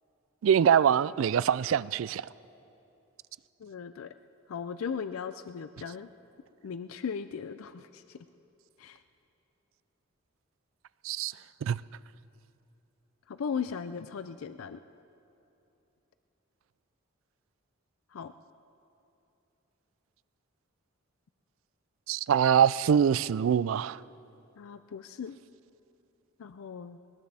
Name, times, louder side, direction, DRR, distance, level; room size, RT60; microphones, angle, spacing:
voice 1, 0.4-2.3 11.0-11.3 11.6-11.8 22.1-24.0, right 8 dB, 70° right, 19 dB, 0.3 m, -24 dB
voice 2, 3.6-4.1 4.5-6.1 6.6-8.3 8.8-9.0 13.3-14.8 18.1-18.3 24.6-25.4 26.4-27.0, left 6 dB, 85° left, 11 dB, 0.4 m, -37 dB
21.0 x 19.0 x 3.4 m, 2.8 s
head